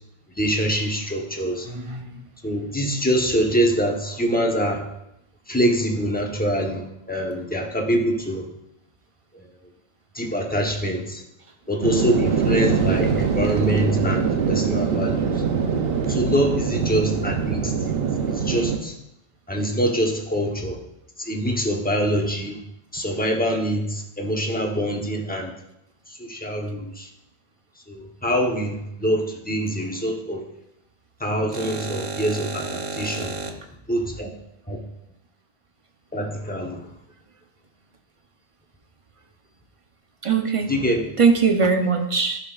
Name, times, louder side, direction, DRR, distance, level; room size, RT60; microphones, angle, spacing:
voice 1, 0.4-1.7 2.4-4.8 5.5-8.5 9.3-9.5 10.1-11.2 11.7-15.4 16.1-18.0 18.3-18.9 19.5-20.8 21.2-22.6 22.9-25.5 26.1-27.1 27.9-30.4 31.2-33.6 33.9-34.3 34.7-34.8 36.1-36.8 40.7-41.0, equal, 10° left, 0 dB, 0.9 m, -24 dB
voice 2, 1.7-2.2 31.5-33.5 40.2-40.7 41.2-42.4, right 5 dB, 35° right, 4 dB, 0.8 m, -23 dB
sound 1, 11.8-18.8, right 6 dB, 70° right, 0.9 m, -23 dB
12.0 x 5.8 x 2.4 m, 0.82 s
omnidirectional pair, 1.1 m